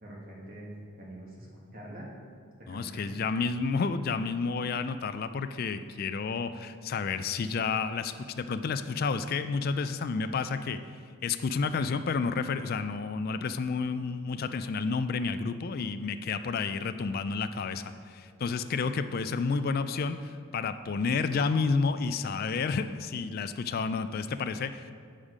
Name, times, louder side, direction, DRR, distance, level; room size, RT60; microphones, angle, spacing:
voice 1, 0.0-0.7 1.0-1.5 1.7-2.1 2.6-3.2, right 1 dB, 45° right, -3 dB, 1.5 m, -44 dB
voice 2, 2.7-10.8 11.2-24.9, left 4 dB, 45° left, 11 dB, 0.3 m, -30 dB
7.2 x 6.4 x 5.0 m, 2.1 s
head